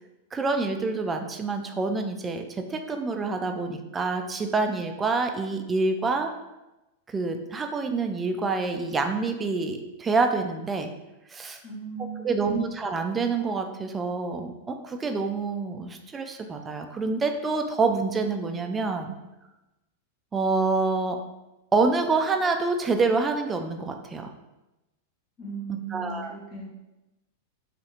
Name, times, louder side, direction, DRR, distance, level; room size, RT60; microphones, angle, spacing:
voice 1, 0.3-6.3 7.1-10.9 11.3-11.6 12.0-19.2 20.3-21.2 21.7-24.3 25.7-26.3, right 3 dB, 20° right, 5 dB, 0.3 m, -27 dB
voice 2, 11.6-12.6 25.4-26.7, right 4 dB, 35° left, -4 dB, 0.9 m, -37 dB
2.6 x 2.4 x 3.0 m, 1.0 s
figure-of-eight pair, 95°, 0 cm